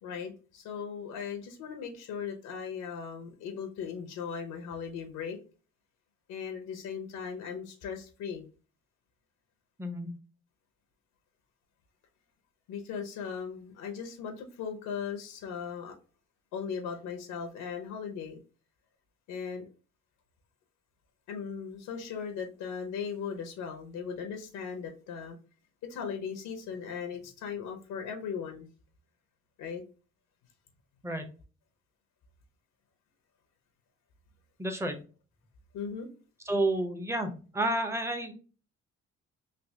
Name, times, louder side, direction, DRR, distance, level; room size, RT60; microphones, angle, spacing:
voice 1, 0.0-5.4 6.3-8.5 12.7-16.0 16.5-18.4 19.3-19.7 21.3-25.4 25.8-28.7 29.6-29.8 35.7-36.1, left 6 dB, 85° left, 4 dB, 0.7 m, -38 dB
voice 2, 9.8-10.1 31.0-31.2 34.6-34.9 36.5-38.3, right 1 dB, 10° right, 6 dB, 0.7 m, -30 dB
3.3 x 2.8 x 2.7 m, 0.36 s
cardioid pair, 90°, 30 cm